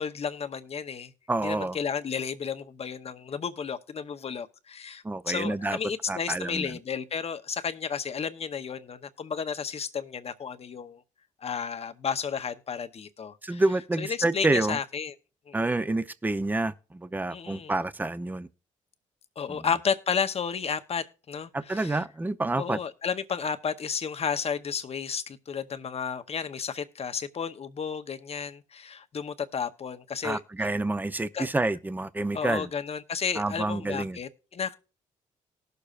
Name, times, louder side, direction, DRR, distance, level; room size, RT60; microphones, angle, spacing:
voice 1, 0.0-1.1 1.4-11.0 11.4-13.6 14.0-15.1 15.5-15.8 17.3-17.7 19.4-22.0 22.6-30.4 31.3-31.5 32.3-34.7, left 6 dB, 45° left, 0.8 m, -32 dB
voice 2, 1.3-1.8 5.0-5.8 6.1-6.8 13.4-14.8 15.5-18.5 19.5-19.7 21.5-22.8 30.2-32.7 33.4-34.2, right 2 dB, 15° right, 0.6 m, -28 dB
19.0 x 6.7 x 2.5 m
supercardioid pair, 60°, 14 cm